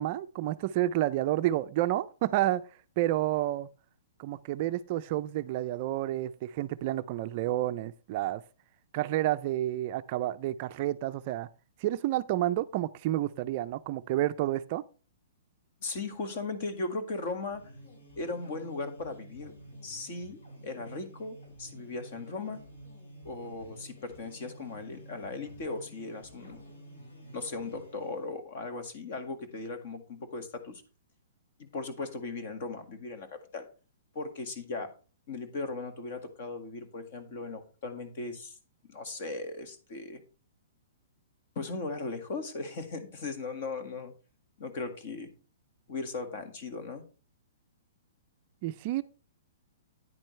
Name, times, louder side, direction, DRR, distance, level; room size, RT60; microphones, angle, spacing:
voice 1, 0.0-2.6 3.0-3.7 4.2-8.4 8.9-11.5 11.8-14.8 48.6-49.0, right 14 dB, 35° right, 0.3 m, -30 dB
voice 2, 15.8-17.6 18.2-19.5 19.8-22.6 23.2-26.6 27.3-30.8 31.6-33.7 34.1-34.9 35.3-38.6 38.9-40.2 41.6-44.1 44.6-45.3 45.9-47.0, left 3 dB, 45° left, 1.8 m, -38 dB
sound 1, 17.3-28.3, right 1 dB, 70° left, 5.3 m, -50 dB
9.8 x 8.9 x 3.2 m
hypercardioid pair, 170°, 0 cm